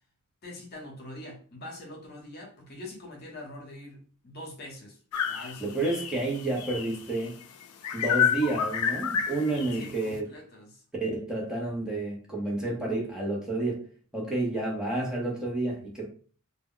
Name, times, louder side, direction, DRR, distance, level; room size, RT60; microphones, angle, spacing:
voice 1, 0.4-5.0 5.2-5.9 9.7-10.8, left 1 dB, 50° left, 0.8 m, -44 dB
sound 1, 5.1-7.3 7.8-9.9, left 7 dB, 85° left, 0.4 m, -29 dB
voice 2, 5.6-7.4 7.9-10.3 11.0-13.9 14.1-16.1, right 2 dB, 5° right, 0.6 m, -30 dB
2.1 x 2.1 x 3.6 m
head